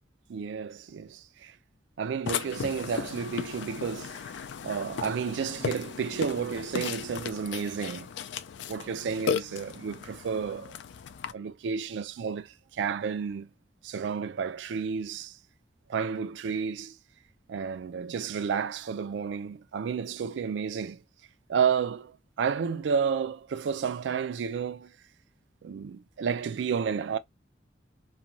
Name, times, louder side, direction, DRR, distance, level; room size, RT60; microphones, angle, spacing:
voice 1, 0.3-1.5 2.0-4.3 4.6-8.1 8.7-10.7 11.3-13.5 13.8-15.4 15.9-17.0 17.5-21.0 21.5-24.9 25.6-27.2, right 6 dB, 75° right, 0.3 m, -31 dB
Burping eructation, 2.3-11.3, left 7 dB, 75° left, 0.3 m, -36 dB
2.6 x 2.2 x 2.9 m
head